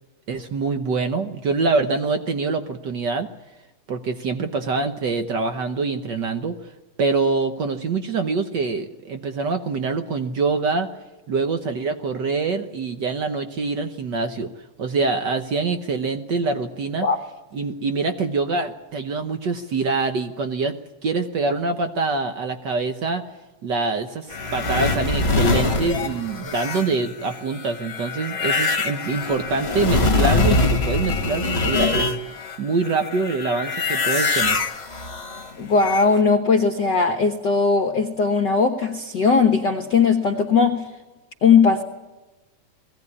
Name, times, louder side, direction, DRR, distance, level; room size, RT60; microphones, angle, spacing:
voice 1, 0.3-3.3 3.9-6.6 7.0-10.9 11.3-14.5 14.8-17.1 17.5-20.8 21.0-23.3 23.6-32.1 32.6-34.6, right 4 dB, 70° right, 8 dB, 1.0 m, -25 dB
sound 1, 24.3-32.6 32.8-36.2, left 3 dB, 30° left, 1.2 m, -23 dB
voice 2, 35.6-40.8 41.4-41.8, left 5 dB, 55° left, 6 dB, 1.2 m, -18 dB
20.5 x 16.5 x 9.7 m, 1.1 s
omnidirectional pair, 3.3 m